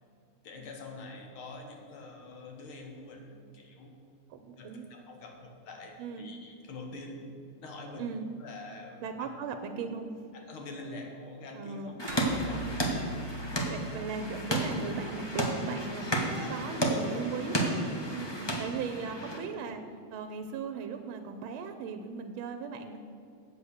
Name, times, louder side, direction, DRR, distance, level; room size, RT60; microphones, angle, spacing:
voice 1, 0.4-3.9 4.6-7.3 7.6-9.3 10.3-12.0 12.4-12.8 13.1-13.3, left 2 dB, 75° left, 2 dB, 2.1 m, -45 dB
voice 2, 4.3-4.8 6.0-6.2 8.0-8.3 9.0-10.1 11.5-11.9 12.6-12.9 13.6-17.8 18.1-19.8 20.1-23.0, right 5 dB, 80° right, 6 dB, 1.5 m, -38 dB
sound 1, 12.0-19.4, right 1 dB, 30° left, 0.4 m, -32 dB
sound 2, 12.1-16.8, right 2 dB, 40° right, 0.9 m, -44 dB
8.4 x 7.7 x 6.4 m, 2.5 s
omnidirectional pair, 2.3 m